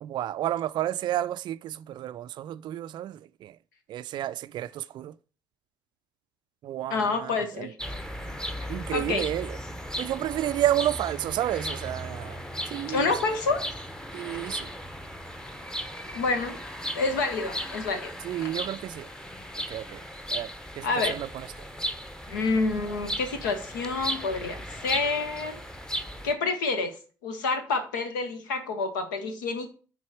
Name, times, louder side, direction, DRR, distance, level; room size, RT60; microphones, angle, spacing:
voice 1, 0.0-3.5 3.9-5.1 6.6-7.7 8.7-9.6 10.0-12.4 12.7-13.1 14.1-14.7 18.2-19.1 19.6-20.0 20.3-21.7, right 13 dB, 50° right, 0.4 m, -31 dB
voice 2, 6.9-7.7 8.6-9.2 12.9-13.6 14.3-14.4 16.1-16.6 16.9-18.5 20.8-21.2 22.3-25.6 26.2-26.9 27.2-29.7, left 3 dB, 75° left, 1.1 m, -28 dB
sound 1, 7.8-26.3, equal, 5° left, 0.9 m, -36 dB
8.2 x 4.5 x 4.8 m
figure-of-eight pair, 45°, 10 cm